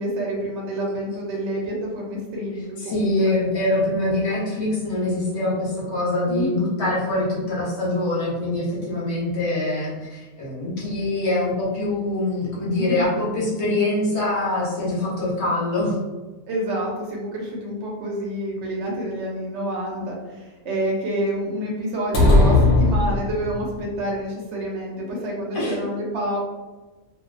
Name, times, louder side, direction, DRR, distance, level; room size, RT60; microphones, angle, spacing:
voice 1, 0.0-3.4 6.3-6.6 12.8-13.1 16.5-26.4, right 1 dB, 65° right, -2 dB, 0.7 m, -28 dB
voice 2, 2.8-16.0 25.5-25.8, left 2 dB, 55° left, -5 dB, 0.8 m, -24 dB
sound 1, 22.1-23.7, left 2 dB, 85° left, 1.0 m, -17 dB
2.3 x 2.2 x 2.4 m, 1.2 s
omnidirectional pair, 1.5 m